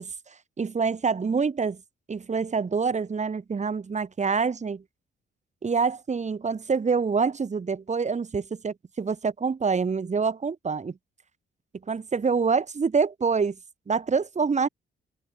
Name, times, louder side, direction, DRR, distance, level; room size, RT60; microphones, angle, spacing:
voice 1, 0.0-1.8 2.1-4.8 5.6-11.0 11.9-13.6 13.9-14.7, right 5 dB, 35° right, 6.8 m, -26 dB
cardioid pair, 90°, 20 cm